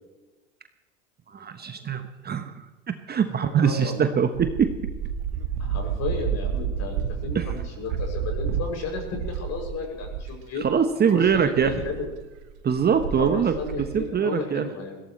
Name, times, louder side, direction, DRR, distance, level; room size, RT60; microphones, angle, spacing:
voice 1, 1.3-2.5 3.1-4.7 7.3-7.4 10.6-11.7 12.6-13.5 13.9-14.6, right 7 dB, 25° right, 8 dB, 1.2 m, -23 dB
voice 2, 3.4-4.1 5.6-10.7 11.1-12.1 13.2-15.0, left 3 dB, 45° left, 1 dB, 7.2 m, -33 dB
sound 1, 4.3-10.3 10.6-10.7 11.1-14.1, right 7 dB, 65° right, 1.9 m, -31 dB
21.5 x 17.0 x 3.3 m, 1.2 s
hypercardioid pair, 85°, 37 cm